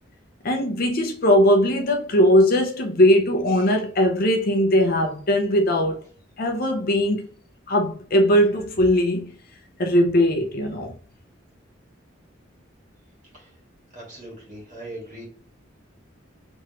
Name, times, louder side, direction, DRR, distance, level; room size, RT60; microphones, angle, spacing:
voice 1, 0.4-6.0 6.4-7.3 7.7-9.3 9.8-10.9, equal, 50° left, 0.7 m, -19 dB
voice 2, 13.9-15.3, right 1 dB, 40° right, 1.8 m, -40 dB
3.5 x 3.1 x 3.0 m
head